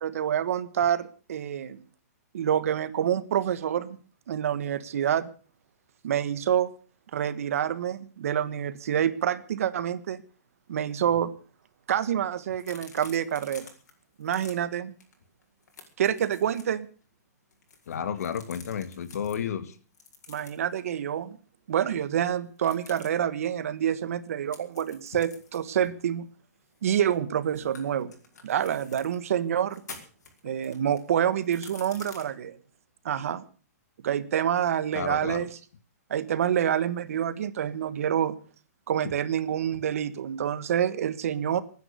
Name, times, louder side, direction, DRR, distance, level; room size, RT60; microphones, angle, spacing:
voice 1, 0.0-1.8 2.3-4.0 4.3-5.3 6.0-6.7 7.1-10.2 10.7-11.3 11.9-13.7 14.2-14.9 16.0-16.9 20.3-21.4 21.7-26.3 26.8-28.1 28.4-29.8 30.4-32.6 33.0-33.4 34.0-35.5 36.1-38.3 38.9-41.6, right 9 dB, 60° right, 14 dB, 1.4 m, -27 dB
sound 1, 12.6-13.9 14.2-14.5 15.0-15.1 15.4-16.7 17.5-19.4 19.9-20.7 22.6-23.1 24.5-27.2 27.5-29.2 29.6-32.2, left 4 dB, 85° left, 5.2 m, -48 dB
voice 2, 17.9-19.8 34.9-35.5, left 8 dB, 65° left, 12 dB, 1.9 m, -32 dB
20.5 x 9.8 x 6.9 m, 0.40 s
hypercardioid pair, 165°, 9 cm